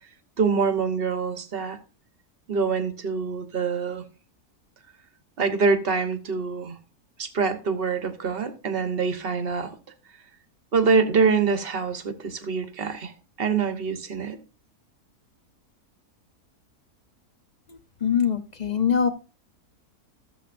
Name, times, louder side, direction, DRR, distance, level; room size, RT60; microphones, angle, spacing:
voice 1, 0.4-1.8 2.5-4.0 5.4-6.8 7.2-9.8 10.7-13.1 13.4-14.4, right 5 dB, 40° right, 1.2 m, -25 dB
voice 2, 17.7-19.1, left 7 dB, 40° left, 0.7 m, -24 dB
15.0 x 7.3 x 2.6 m
omnidirectional pair, 1.7 m